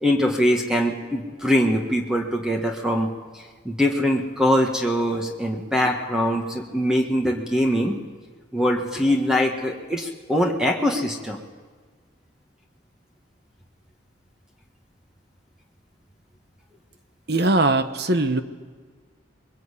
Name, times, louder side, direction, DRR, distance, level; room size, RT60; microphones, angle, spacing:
voice 1, 0.0-3.1 3.6-8.0 8.5-11.4, equal, 5° right, 1 dB, 1.6 m, -22 dB
voice 2, 17.3-18.4, right 2 dB, 55° right, 9 dB, 1.1 m, -20 dB
26.0 x 22.0 x 8.4 m, 1.5 s
head